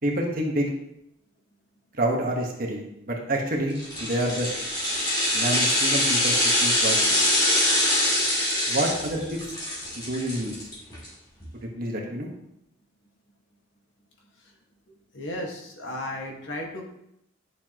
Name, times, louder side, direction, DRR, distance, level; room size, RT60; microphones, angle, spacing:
voice 1, 0.0-0.7 1.9-4.5 5.3-7.2 8.7-9.4 9.9-10.6 11.8-12.3, right 1 dB, 45° right, 0 dB, 1.4 m, -28 dB
sound 1, 3.8-11.1 11.4-11.5, left 1 dB, 20° left, 3.1 m, -24 dB
voice 2, 15.1-16.9, left 1 dB, 65° left, 0 dB, 1.8 m, -34 dB
11.0 x 7.0 x 3.0 m, 0.81 s
head